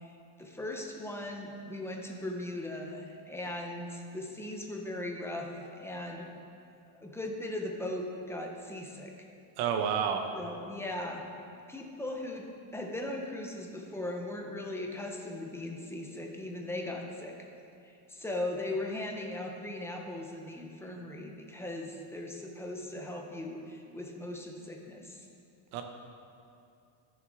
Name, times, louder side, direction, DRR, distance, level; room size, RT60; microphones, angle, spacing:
voice 1, 0.0-5.5 5.8-6.3 7.0-9.3 10.3-11.2 11.7-17.4 17.8-25.3, left 1 dB, 5° left, 1 dB, 0.5 m, -38 dB
voice 2, 9.6-10.3 25.7-25.8, right 7 dB, 85° right, 4 dB, 0.9 m, -29 dB
14.0 x 6.5 x 3.5 m, 2.5 s
cardioid pair, 165°, 44 cm